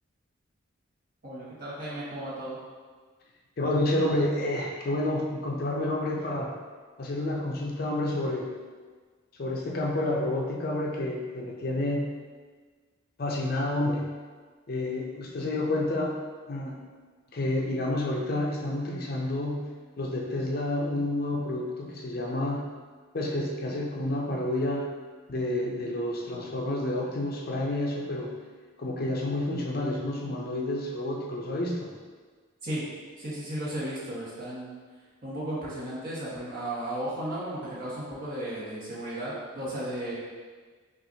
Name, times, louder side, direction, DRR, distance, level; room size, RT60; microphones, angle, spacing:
voice 1, 1.2-2.6 32.6-32.8 33.2-34.7 35.2-40.1, right 1 dB, 45° right, -8 dB, 1.2 m, -34 dB
voice 2, 3.6-6.6 7.0-8.5 9.3-12.1 13.2-14.1 14.7-16.2 16.5-16.8 17.3-19.7 20.0-22.7 23.1-24.9 25.3-28.3 28.8-31.9, left 1 dB, 50° left, -1 dB, 0.5 m, -29 dB
5.6 x 2.5 x 2.7 m, 1.5 s
head